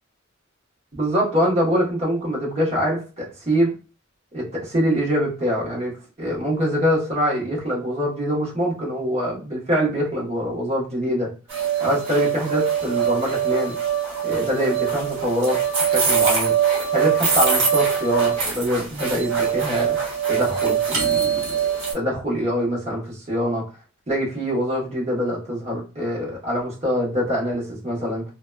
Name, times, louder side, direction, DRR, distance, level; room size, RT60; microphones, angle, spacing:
voice 1, 0.9-3.7 4.3-5.9 6.2-11.3 11.8-13.7 14.2-16.5 16.9-20.0 20.3-21.7 21.9-23.6 24.1-28.2, equal, 30° right, -4 dB, 1.0 m, -24 dB
sound 1, 11.5-21.9, right 7 dB, 60° right, 1.0 m, -22 dB
2.7 x 2.2 x 2.2 m, 0.33 s
head